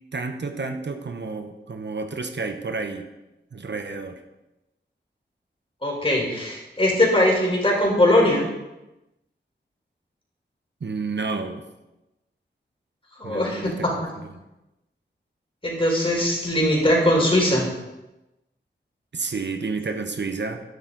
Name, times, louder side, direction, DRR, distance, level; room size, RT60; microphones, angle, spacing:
voice 1, 0.1-3.1 3.5-4.2 10.8-11.6 13.2-13.9 19.1-20.6, right 4 dB, 70° right, 6 dB, 0.9 m, -30 dB
voice 2, 5.8-8.5 13.2-13.9 15.6-17.7, left 1 dB, 30° left, -2 dB, 4.2 m, -20 dB
11.5 x 10.5 x 4.0 m, 0.98 s
wide cardioid pair, 85°, 19 cm